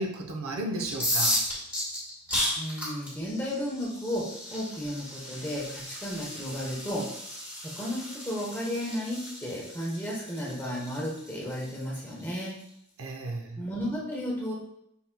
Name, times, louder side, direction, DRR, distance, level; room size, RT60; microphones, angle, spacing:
voice 1, 0.0-1.4 13.0-13.6, right 1 dB, 85° right, 1 dB, 0.7 m, -33 dB
sound 1, 0.9-12.6, left 1 dB, 10° right, 1.6 m, -34 dB
voice 2, 2.6-7.1 7.6-12.6 13.6-14.5, equal, 10° left, -5 dB, 1.0 m, -33 dB
5.8 x 4.0 x 2.2 m, 0.77 s
head